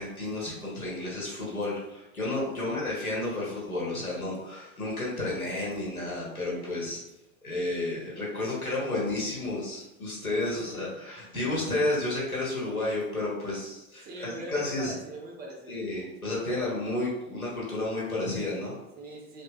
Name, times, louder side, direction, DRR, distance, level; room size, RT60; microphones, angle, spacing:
voice 1, 0.0-7.0 7.4-14.9 15.7-18.8, left 2 dB, 85° left, -5 dB, 1.1 m, -31 dB
voice 2, 10.5-11.3 14.0-15.8 18.9-19.4, right 1 dB, 20° right, -1 dB, 0.7 m, -42 dB
3.1 x 2.3 x 3.6 m, 0.93 s
figure-of-eight pair, 90°, 42 cm